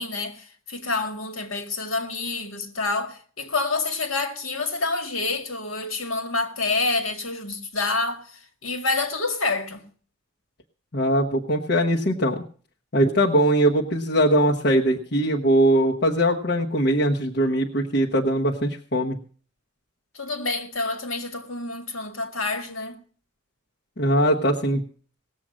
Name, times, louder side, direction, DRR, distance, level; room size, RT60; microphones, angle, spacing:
voice 1, 0.0-9.8 20.1-23.0, left 3 dB, 75° left, 1.9 m, -28 dB
voice 2, 10.9-12.4 12.9-19.2 24.0-24.8, right 1 dB, 50° left, 1.1 m, -21 dB
18.5 x 7.5 x 6.3 m
head